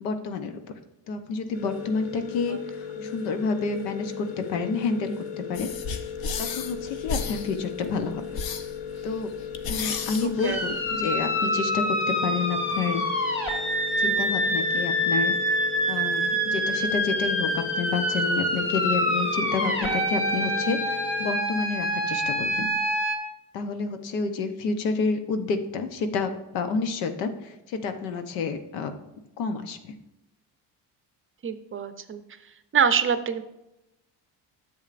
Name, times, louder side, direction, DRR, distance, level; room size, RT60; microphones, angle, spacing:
voice 1, 0.0-0.6 1.1-5.7 6.4-8.2 9.0-9.3 9.7-12.0 12.2-13.0 14.0-15.3 15.9-22.7 23.5-28.9 29.4-29.8, left 4 dB, 90° left, 8 dB, 0.9 m, -29 dB
sound 1, 1.5-21.3, left 8 dB, 70° left, 1.2 m, -37 dB
voice 2, 2.2-2.6 3.0-3.2 10.4-10.6 31.4-33.4, right 7 dB, 30° right, 11 dB, 0.5 m, -27 dB
sound 2, 5.5-11.2, left 5 dB, 50° left, 0.9 m, -34 dB
sound 3, 10.4-23.2, equal, 25° left, 2.8 m, -26 dB
10.5 x 7.2 x 2.5 m, 0.93 s
supercardioid pair, 90°, 46 cm